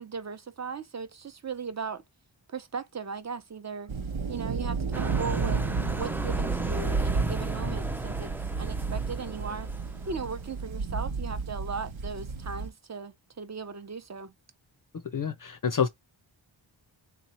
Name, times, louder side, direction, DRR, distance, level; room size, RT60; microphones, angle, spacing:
voice 1, 0.0-2.0 2.5-3.9 4.3-5.6 5.9-9.7 10.1-14.3, right 5 dB, 35° right, 0.7 m, -37 dB
sound 1, 3.9-12.7, right 4 dB, 70° right, 0.9 m, -31 dB
sound 2, 4.9-10.6, right 1 dB, 5° right, 0.3 m, -36 dB
voice 2, 15.1-15.9, left 7 dB, 45° left, 0.5 m, -27 dB
3.7 x 3.0 x 2.9 m
cardioid pair, 50°, 49 cm